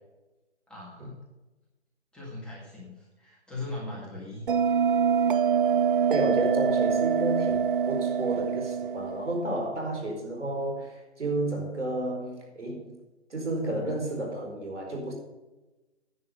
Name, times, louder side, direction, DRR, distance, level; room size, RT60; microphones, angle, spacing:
voice 1, 0.7-1.2 2.1-5.0, left 2 dB, 5° left, -7 dB, 1.9 m, -40 dB
Bell, 4.5-9.6, right 7 dB, 50° right, 0.5 m, -25 dB
voice 2, 6.1-13.0 13.3-15.1, right 1 dB, 85° right, 1 dB, 4.5 m, -31 dB
10.0 x 7.5 x 6.4 m, 1.1 s
figure-of-eight pair, 155°, 34 cm